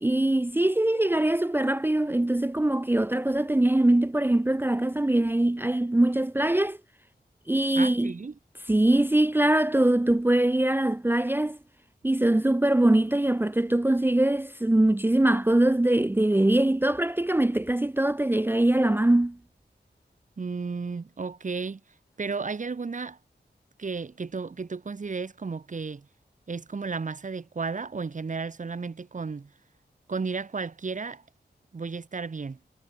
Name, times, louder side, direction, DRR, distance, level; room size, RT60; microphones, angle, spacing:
voice 1, 0.0-6.8 7.5-8.1 8.7-11.6 12.0-19.4, right 1 dB, 10° right, 0.5 m, -22 dB
voice 2, 7.7-8.3 20.4-21.8 22.2-23.2 23.8-26.1 26.5-29.5 30.1-31.2 31.7-32.6, right 4 dB, 45° right, 1.1 m, -33 dB
wide cardioid pair, 105°, 18 cm